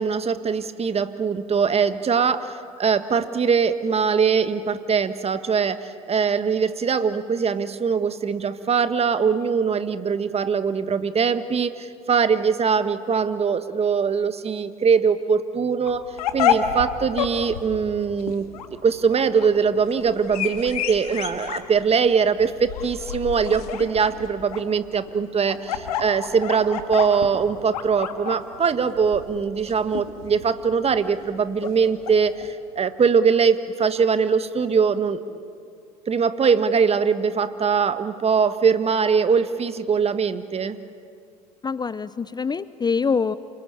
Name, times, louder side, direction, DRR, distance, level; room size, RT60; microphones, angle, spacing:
voice 1, 0.0-18.4 18.8-35.4 36.1-40.8, right 6 dB, 30° right, 11 dB, 1.5 m, -22 dB
sound 1, 15.9-32.5, left 9 dB, 80° left, 1.9 m, -30 dB
voice 2, 41.6-43.4, left 5 dB, 20° left, 16 dB, 0.7 m, -24 dB
29.0 x 21.5 x 9.0 m, 2.3 s
hypercardioid pair, 65°, 19 cm